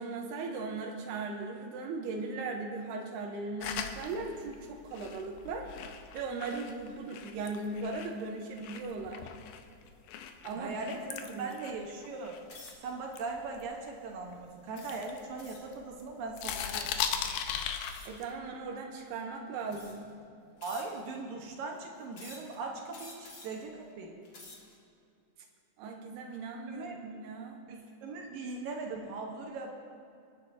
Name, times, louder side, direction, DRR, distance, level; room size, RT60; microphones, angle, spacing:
voice 1, 0.0-5.7 6.1-9.2 10.4-11.5 18.1-20.1 25.8-27.6, right 3 dB, 85° right, 2 dB, 2.9 m, -38 dB
sound 1, 3.6-8.2 8.6-12.7 13.1-14.3 14.8-16.0 16.3-18.3, left 8 dB, 75° left, 2.3 m, -39 dB
voice 2, 10.6-12.4 12.8-16.9 20.6-24.2 26.7-27.0 27.7-29.8, right 3 dB, 70° right, 0 dB, 2.5 m, -40 dB
sound 2, 12.5-12.9 13.6-13.8 14.7-15.8 17.9-18.3 19.1-19.2 19.7-20.1 20.6-21.2 22.1-22.6 22.9-23.6 24.1-24.7, left 2 dB, 45° left, 1.6 m, -50 dB
25.0 x 9.4 x 2.7 m, 2.5 s
omnidirectional pair, 4.6 m